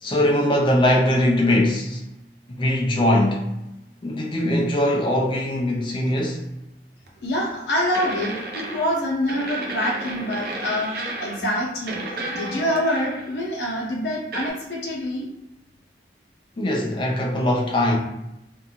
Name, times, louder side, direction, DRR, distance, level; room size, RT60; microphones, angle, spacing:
voice 1, 0.0-2.0 2.5-3.5 4.0-6.4 16.6-18.0, left 1 dB, 30° left, 0.4 m, -21 dB
sound 1, 7.1-7.2 7.9-9.0 9.3-11.5 11.9-13.4 14.3-14.5, right 1 dB, 60° right, 0.5 m, -32 dB
voice 2, 7.2-10.9 11.2-12.0 12.3-15.3, equal, 80° left, 0.8 m, -25 dB
2.6 x 2.3 x 2.9 m
head